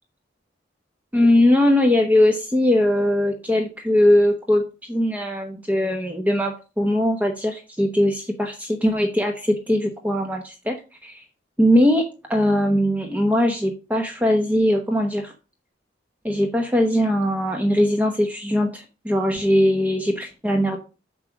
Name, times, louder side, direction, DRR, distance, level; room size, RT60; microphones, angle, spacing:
voice 1, 1.1-10.8 11.0-11.2 11.6-15.3 16.2-20.8, left 1 dB, 10° right, 3 dB, 1.0 m, -20 dB
7.5 x 6.1 x 5.8 m, 0.32 s
head